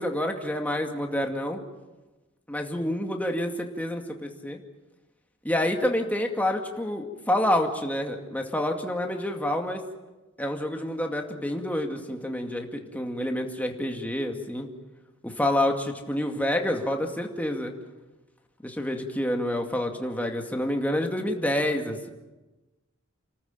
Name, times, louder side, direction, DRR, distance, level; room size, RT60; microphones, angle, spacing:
voice 1, 0.0-1.6 2.5-4.6 5.4-9.8 10.4-14.7 15.2-17.7 18.6-22.1, left 1 dB, 5° left, 3 dB, 2.2 m, -28 dB
29.5 x 14.0 x 9.1 m, 1.1 s
head